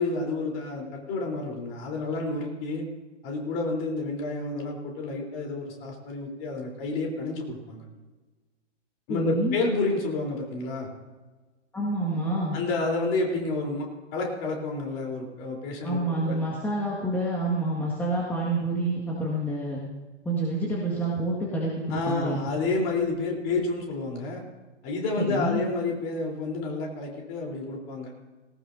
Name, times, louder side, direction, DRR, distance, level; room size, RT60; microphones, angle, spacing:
voice 1, 0.0-2.8 3.2-7.8 9.1-10.9 12.5-13.9 14.1-16.4 21.9-24.4 24.8-28.1, left 3 dB, 30° left, 0 dB, 3.8 m, -29 dB
voice 2, 9.1-9.6 11.7-12.6 15.8-19.8 20.2-22.5 25.2-25.6, right 1 dB, 5° left, -5 dB, 1.8 m, -28 dB
19.0 x 18.5 x 2.7 m, 1.3 s
figure-of-eight pair, 125°, 36 cm